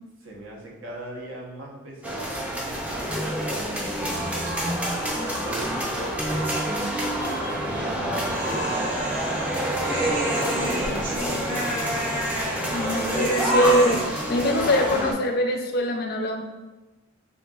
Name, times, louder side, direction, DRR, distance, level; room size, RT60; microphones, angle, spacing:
voice 1, 0.2-6.6 7.5-8.8 9.2-11.4 14.2-14.6, right 1 dB, 70° right, -2 dB, 1.0 m, -40 dB
sound 1, 2.0-15.1, right 1 dB, 5° right, 0.4 m, -27 dB
Human voice, 8.3-14.7, equal, 45° right, 1.2 m, -30 dB
voice 2, 12.7-16.4, left 1 dB, 50° left, 4 dB, 0.4 m, -23 dB
6.8 x 2.7 x 2.4 m, 1.1 s
head